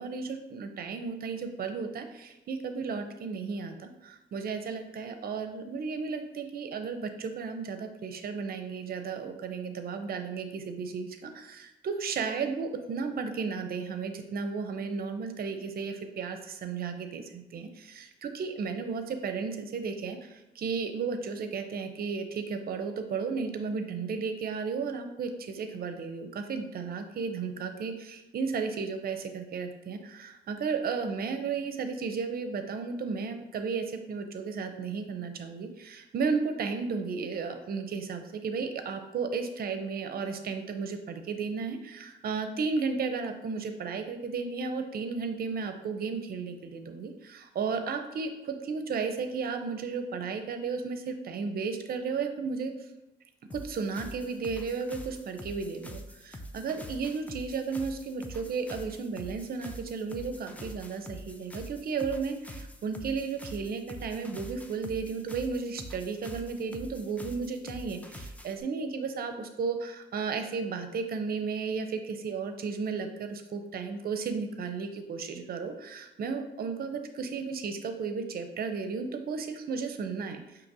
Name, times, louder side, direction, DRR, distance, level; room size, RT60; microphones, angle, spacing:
voice 1, 0.0-52.7 53.5-80.4, right 5 dB, 50° right, 7 dB, 0.5 m, -34 dB
sound 1, 53.5-68.6, equal, 5° left, 0.4 m, -45 dB
5.2 x 2.8 x 2.7 m, 0.99 s
cardioid pair, 90°, 20 cm